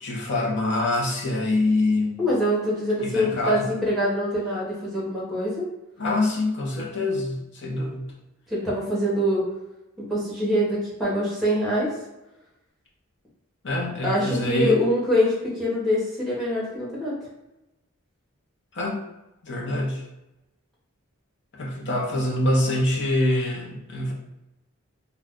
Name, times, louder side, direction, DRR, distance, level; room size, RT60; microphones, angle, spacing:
voice 1, 0.0-2.2 3.0-3.7 6.0-8.1 13.6-14.8 18.7-19.0 19.4-20.0 21.5-24.1, left 2 dB, 55° left, -1 dB, 0.7 m, -25 dB
voice 2, 2.2-5.7 8.5-9.4 10.0-11.9 14.0-17.1, equal, ahead, -6 dB, 1.0 m, -24 dB
2.5 x 2.3 x 3.6 m, 0.96 s
head